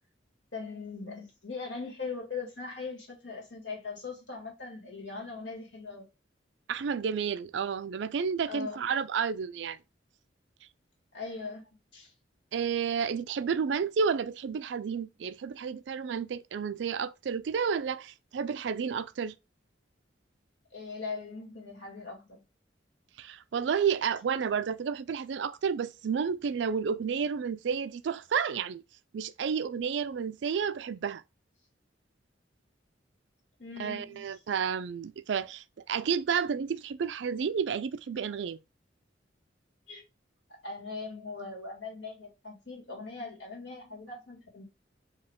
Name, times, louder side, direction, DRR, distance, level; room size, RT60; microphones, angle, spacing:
voice 1, 0.5-6.1 8.5-8.9 11.1-11.6 11.9-12.1 20.7-22.4 33.6-34.4 39.9-40.0 40.6-44.6, left 4 dB, 80° left, 2.0 m, -40 dB
voice 2, 6.7-9.8 12.5-19.3 23.2-28.8 29.1-31.2 33.8-38.6, right 6 dB, 75° right, 0.4 m, -31 dB
4.8 x 2.8 x 3.5 m
head